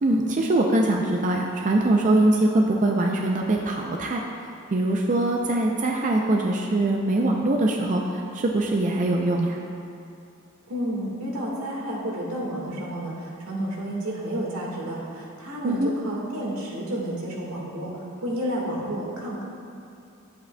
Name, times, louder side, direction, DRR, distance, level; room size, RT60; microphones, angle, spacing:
voice 1, 0.0-4.2 4.7-9.6 15.6-15.9, right 2 dB, 35° right, 1 dB, 0.4 m, -22 dB
voice 2, 10.7-19.4, equal, 85° right, -3 dB, 1.6 m, -31 dB
10.5 x 7.9 x 2.2 m, 2.5 s
head